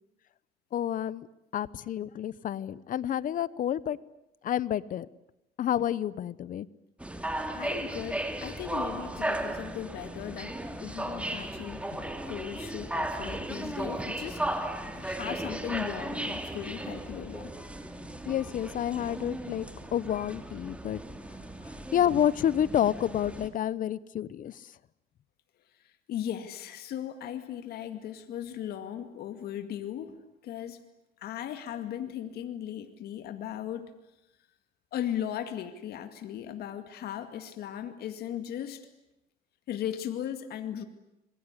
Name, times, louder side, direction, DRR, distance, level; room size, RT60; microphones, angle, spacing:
voice 1, 0.7-1.3 1.5-4.0 4.4-5.1 5.6-6.7 18.3-19.7 19.9-21.0 21.9-24.5, left 10 dB, 55° left, 20 dB, 0.9 m, -29 dB
sound 1, 7.0-23.5, right 1 dB, 5° right, 2.8 m, -36 dB
voice 2, 7.5-14.4 14.9-17.5 21.6-21.8 26.1-30.1 30.4-30.8 31.2-33.9 34.9-38.8 39.7-40.8, left 10 dB, 70° left, 8 dB, 2.2 m, -37 dB
26.5 x 21.5 x 9.8 m, 0.90 s
cardioid pair, 110°, 17 cm